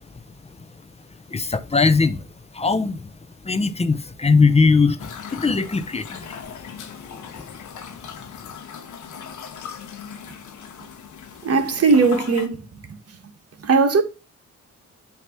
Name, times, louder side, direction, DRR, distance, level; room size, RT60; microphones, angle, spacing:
voice 1, 1.3-2.2 2.5-3.1 3.4-6.2, left 4 dB, 20° left, 0.7 m, -20 dB
sound 1, 5.0-12.5, left 7 dB, 75° left, 1.1 m, -38 dB
voice 2, 11.4-13.3 13.6-14.0, right 4 dB, 50° right, 1.5 m, -19 dB
7.9 x 3.0 x 5.8 m
cardioid pair, 85°, 31 cm